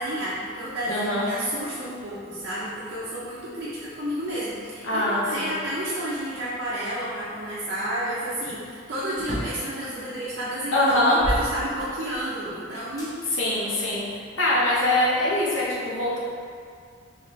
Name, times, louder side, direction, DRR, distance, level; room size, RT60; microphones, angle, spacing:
voice 1, 0.0-13.1, right 1 dB, 50° right, -9 dB, 0.6 m, -31 dB
voice 2, 0.9-1.3 4.8-5.5 10.7-11.2 13.3-14.1 14.4-16.2, left 1 dB, 75° left, -6 dB, 1.0 m, -23 dB
sound 1, 9.2-9.7 10.3-10.4 10.9-12.3 13.0-13.1 13.8-14.9, equal, 20° left, 1.0 m, -33 dB
4.1 x 3.2 x 3.1 m, 2.2 s
head